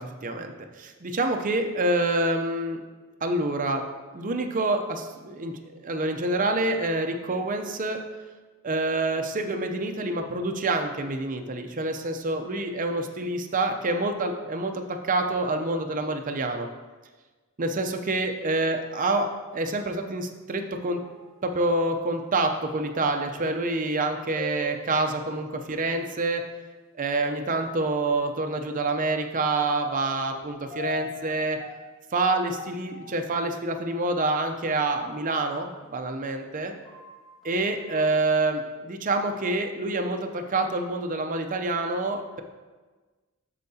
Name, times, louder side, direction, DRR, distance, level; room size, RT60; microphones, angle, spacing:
voice 1, 0.0-2.8 3.2-3.9 4.1-8.0 8.6-16.7 17.6-21.0 21.4-26.4 27.0-31.6 32.1-36.7 37.4-42.4, right 2 dB, 35° right, 5 dB, 0.6 m, -27 dB
sound 1, 21.0-25.6 26.1-26.2 27.2-36.2 36.6-38.5, left 1 dB, ahead, 1.7 m, -43 dB
13.0 x 4.6 x 2.8 m, 1.3 s
head